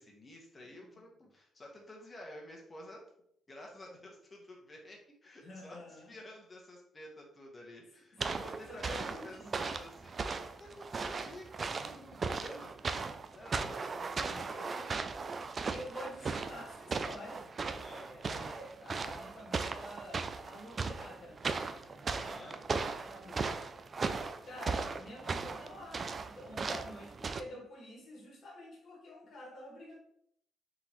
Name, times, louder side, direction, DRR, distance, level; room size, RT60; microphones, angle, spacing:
voice 1, 0.0-3.0 3.5-14.8 17.7-18.2 22.1-22.6, left 1 dB, 30° left, -1 dB, 1.4 m, -51 dB
voice 2, 5.4-6.1 8.1-8.4 8.7-9.5 15.7-17.5 18.1-23.5 24.4-30.0, left 1 dB, 55° left, -2 dB, 1.7 m, -49 dB
sound 1, 8.2-27.4, right 4 dB, 40° right, 0.4 m, -38 dB
3.9 x 3.8 x 3.1 m, 0.70 s
cardioid pair, 90°, 0 cm